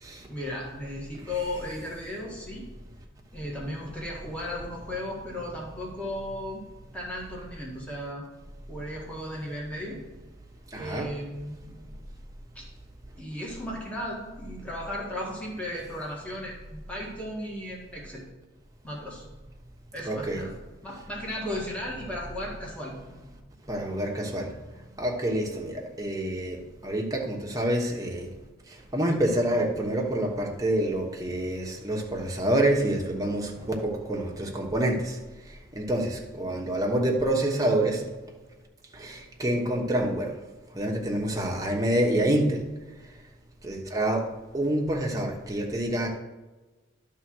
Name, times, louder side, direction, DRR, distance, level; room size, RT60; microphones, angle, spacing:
voice 1, 0.3-2.7 3.3-6.6 6.9-8.2 8.7-10.0 10.7-11.8 12.5-12.6 13.2-18.2 18.8-19.2 19.9-20.5 20.8-22.9, left 1 dB, 5° left, -4 dB, 1.7 m, -35 dB
voice 2, 10.7-11.1 20.0-20.4 23.6-24.6 25.0-28.3 28.7-35.2 35.5-38.1 38.9-40.3 40.7-42.7 43.6-46.2, right 1 dB, 20° right, 0 dB, 1.1 m, -27 dB
11.0 x 3.8 x 6.1 m, 1.2 s
head